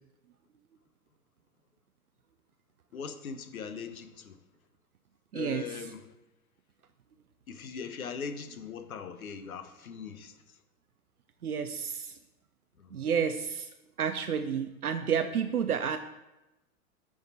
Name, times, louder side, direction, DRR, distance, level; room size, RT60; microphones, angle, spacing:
voice 1, 2.9-4.4 5.3-6.1 7.5-10.4 12.8-13.1, left 6 dB, 70° left, 10 dB, 0.8 m, -40 dB
voice 2, 5.3-5.7 11.4-12.2 12.9-13.7 14.0-16.0, right 7 dB, 80° right, 7 dB, 0.6 m, -30 dB
9.7 x 4.8 x 4.0 m, 0.98 s
figure-of-eight pair, 100°, 44 cm